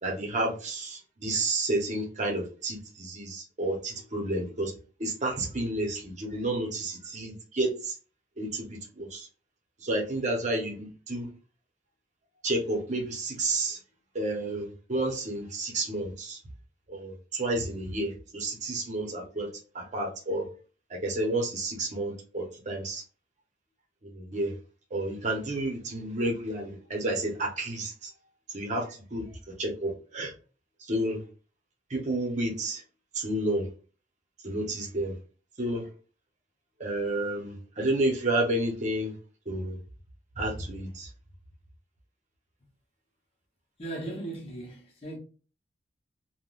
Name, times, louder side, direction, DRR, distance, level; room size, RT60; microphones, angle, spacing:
voice 1, 0.0-4.7 5.0-7.9 8.4-9.3 9.8-11.3 12.4-13.8 14.1-16.4 16.9-19.5 19.7-20.5 20.9-23.0 24.0-24.5 24.9-28.1 28.5-29.3 29.6-30.3 30.8-31.2 31.9-32.8 33.1-33.7 34.4-35.1 35.6-35.9 36.8-39.1 39.5-39.8 40.4-41.1, right 1 dB, 45° right, 0.8 m, -30 dB
voice 2, 43.8-45.2, right 2 dB, 35° left, 0.8 m, -37 dB
3.5 x 2.2 x 2.3 m
head